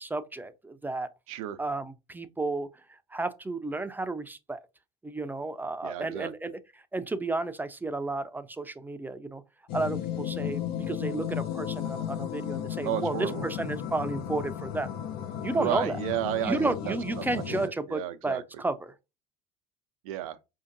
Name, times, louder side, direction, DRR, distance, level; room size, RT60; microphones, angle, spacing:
voice 1, 0.0-1.1 1.6-4.6 5.0-9.4 9.7-14.9 15.4-16.0 16.4-18.9, right 2 dB, 10° right, 0.5 m, -32 dB
voice 2, 1.3-1.6 5.8-6.3 12.8-13.4 15.5-17.0 17.5-18.4 20.0-20.4, right 13 dB, 80° right, 0.6 m, -32 dB
sound 1, 9.7-17.7, left 10 dB, 60° left, 0.6 m, -34 dB
4.9 x 2.7 x 2.5 m
hypercardioid pair, 80°, 18 cm